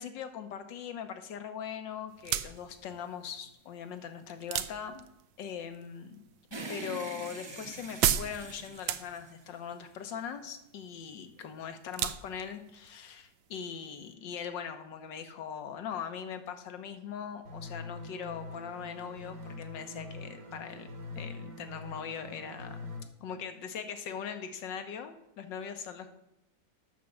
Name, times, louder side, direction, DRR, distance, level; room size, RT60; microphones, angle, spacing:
voice 1, 0.0-5.0 5.4-6.2 6.7-20.9 21.2-22.9 23.2-26.1, left 7 dB, 80° left, 8 dB, 1.7 m, -41 dB
sound 1, 2.1-14.1, right 11 dB, 80° right, 1.3 m, -37 dB
sound 2, 6.5-10.0, right 3 dB, 30° right, 0.5 m, -44 dB
sound 3, 17.5-23.0, left 2 dB, 50° right, 1.6 m, -44 dB
8.3 x 6.5 x 7.2 m, 0.86 s
omnidirectional pair, 1.9 m